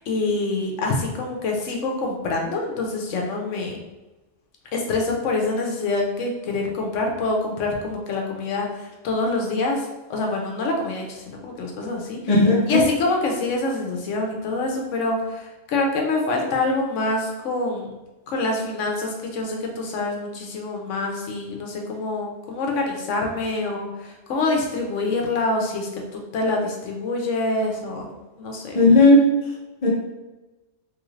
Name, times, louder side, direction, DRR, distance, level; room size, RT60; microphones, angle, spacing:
voice 1, 0.0-3.8 4.7-12.2 12.7-17.9 18.3-28.8, left 2 dB, 85° left, 1 dB, 1.0 m, -26 dB
voice 2, 12.3-12.8 28.7-29.3 29.8-29.9, left 2 dB, 35° left, -6 dB, 0.7 m, -14 dB
3.2 x 3.1 x 2.4 m, 1.1 s
omnidirectional pair, 1.2 m